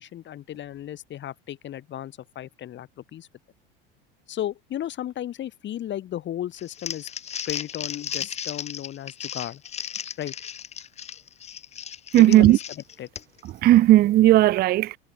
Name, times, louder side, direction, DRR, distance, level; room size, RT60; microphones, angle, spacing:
voice 1, 0.0-3.3 4.3-7.1 7.5-9.6 10.2-10.3 12.2-12.5 13.0-13.1, left 11 dB, 40° left, 1.5 m, -34 dB
sound 1, 0.5-3.2, left 10 dB, 90° left, 6.9 m, -68 dB
Crumpling crinkling, 6.6-13.5, left 8 dB, 25° left, 0.5 m, -35 dB
voice 2, 12.1-12.6 13.4-15.0, right 14 dB, 35° right, 0.4 m, -16 dB
hypercardioid pair, 85°, 29 cm